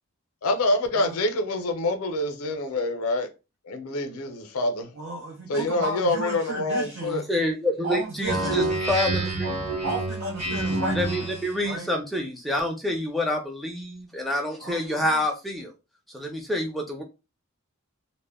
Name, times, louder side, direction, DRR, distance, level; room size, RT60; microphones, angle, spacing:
voice 1, 0.4-3.3 3.7-4.9 5.5-7.2, left 2 dB, 90° left, 0.5 m, -26 dB
voice 2, 5.0-7.2 7.8-8.8 9.8-11.3 11.6-11.9 14.6-15.2, right 2 dB, 80° right, 0.7 m, -33 dB
voice 3, 7.1-9.8 10.9-15.7 16.1-17.0, left 1 dB, ahead, 0.4 m, -28 dB
Speech synthesizer, 8.2-11.6, right 2 dB, 30° right, 0.8 m, -28 dB
2.1 x 2.1 x 3.4 m
head